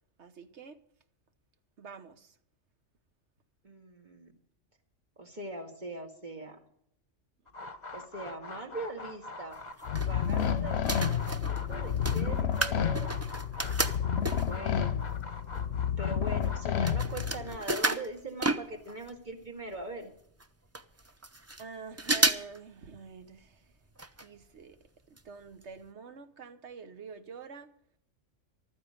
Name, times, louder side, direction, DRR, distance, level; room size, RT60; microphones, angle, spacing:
voice 1, 0.2-0.8 1.8-2.4 21.6-23.7 24.2-24.8 25.1-27.7, right 5 dB, 65° right, 1.3 m, -47 dB
voice 2, 3.6-4.3 5.2-6.6 7.9-9.6 10.1-13.1 13.6-15.1 16.0-20.1, right 2 dB, 35° right, 2.2 m, -41 dB
sound 1, 7.5-16.8, left 2 dB, 35° left, 1.0 m, -44 dB
sound 2, 9.5-10.5 10.8-14.7 15.3-15.4 15.5-19.2 19.4-19.5 19.7-19.8 20.4-20.5 20.7-21.6 22.0-22.6 22.9-23.0 24.0-24.3 24.6-24.7 25.2-25.3 25.6-25.7, right 2 dB, 20° right, 0.5 m, -32 dB
sound 3, 9.9-17.6, left 8 dB, 60° left, 0.9 m, -30 dB
15.0 x 12.5 x 5.1 m
omnidirectional pair, 1.3 m